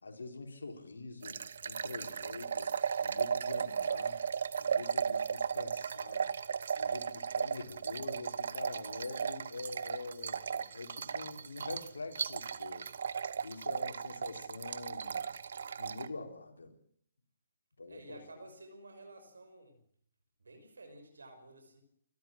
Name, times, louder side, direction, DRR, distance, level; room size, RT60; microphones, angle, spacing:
voice 1, 0.0-1.4 1.6-2.7 3.0-4.2 4.6-6.3 6.7-12.9 13.4-15.2 15.8-16.7 17.8-18.2, left 3 dB, 85° left, 4 dB, 4.2 m, -45 dB
sound 1, 1.2-16.1, right 6 dB, 65° right, 1.0 m, -36 dB
voice 2, 17.9-19.8 20.4-21.8, right 2 dB, 85° right, 7 dB, 5.8 m, -53 dB
29.0 x 13.5 x 7.5 m, 0.68 s
hypercardioid pair, 140°, 0 cm